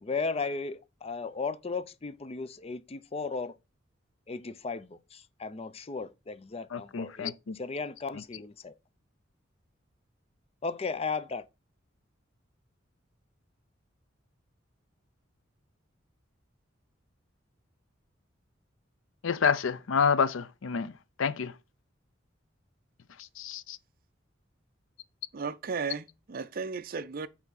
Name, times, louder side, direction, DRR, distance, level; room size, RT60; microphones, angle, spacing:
voice 1, 0.0-3.5 4.3-8.7 10.6-11.5, left 4 dB, 30° left, 0.5 m, -35 dB
voice 2, 6.7-7.6 19.2-20.9 21.2-21.5 23.4-23.8, left 6 dB, 85° left, 0.5 m, -28 dB
voice 3, 25.3-27.3, right 5 dB, 50° right, 0.5 m, -35 dB
5.8 x 4.5 x 3.9 m
head